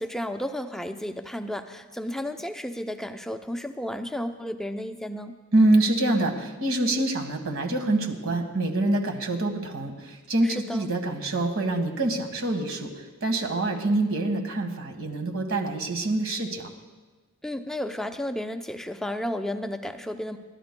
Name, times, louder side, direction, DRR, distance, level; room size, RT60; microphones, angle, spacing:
voice 1, 0.0-5.3 10.4-10.9 17.4-20.4, left 1 dB, ahead, 6 dB, 0.5 m, -33 dB
voice 2, 5.5-12.9 13.2-16.7, right 2 dB, 65° right, 4 dB, 1.6 m, -25 dB
29.5 x 12.5 x 2.2 m, 1.3 s
head